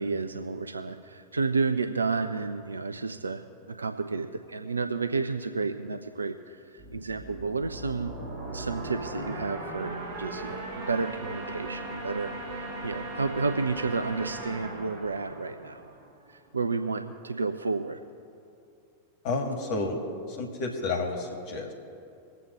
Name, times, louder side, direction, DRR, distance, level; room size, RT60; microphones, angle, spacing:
voice 1, 0.0-8.1 8.5-15.9 16.3-18.0, right 4 dB, 75° right, 7 dB, 0.4 m, -31 dB
sound 1, 6.8-16.3, right 2 dB, 40° right, 2.3 m, -38 dB
voice 2, 19.2-20.0 20.3-21.7, left 3 dB, 45° left, 3 dB, 1.7 m, -30 dB
23.5 x 8.0 x 3.0 m, 2.5 s
figure-of-eight pair, 90°, 0 cm